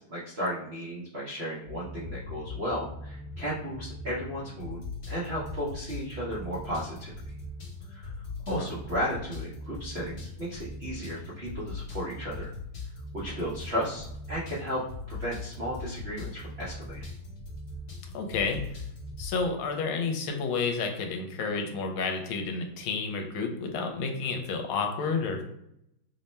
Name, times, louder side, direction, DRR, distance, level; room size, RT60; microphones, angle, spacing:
voice 1, 0.1-4.8 5.1-7.1 7.9-8.1 8.5-12.5 13.1-14.8 15.1-17.1, equal, 80° right, -7 dB, 0.5 m, -34 dB
sound 1, 1.7-19.4, left 2 dB, 60° left, 0.6 m, -40 dB
voice 2, 18.1-18.6 19.2-25.4, left 4 dB, 80° left, 3 dB, 1.5 m, -30 dB
3.5 x 2.1 x 4.1 m, 0.78 s
omnidirectional pair, 2.3 m